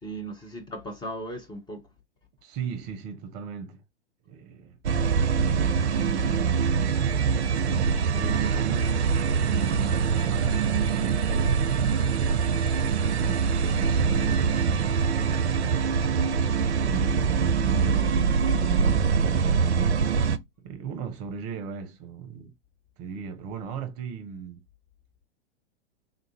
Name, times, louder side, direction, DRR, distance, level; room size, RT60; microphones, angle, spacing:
voice 1, 0.0-1.8, right 1 dB, 15° left, 0.7 m, -39 dB
voice 2, 2.4-3.8 4.3-4.8 5.7-7.1 7.6-9.0 9.4-12.0 13.1-15.8 16.7-19.6 20.6-22.5 23.0-24.6, right 6 dB, 40° right, 0.6 m, -37 dB
sound 1, 4.8-20.4, right 6 dB, 75° right, 0.5 m, -24 dB
3.7 x 2.3 x 2.9 m
figure-of-eight pair, 100°, 33 cm